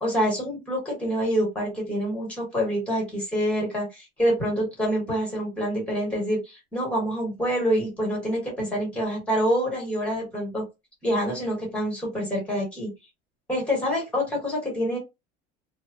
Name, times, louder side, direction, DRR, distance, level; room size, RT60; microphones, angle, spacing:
voice 1, 0.0-10.6 11.0-12.9 13.5-15.0, equal, 5° left, -2 dB, 1.2 m, -26 dB
3.0 x 2.0 x 2.5 m, 0.24 s
cardioid pair, 175°, 19 cm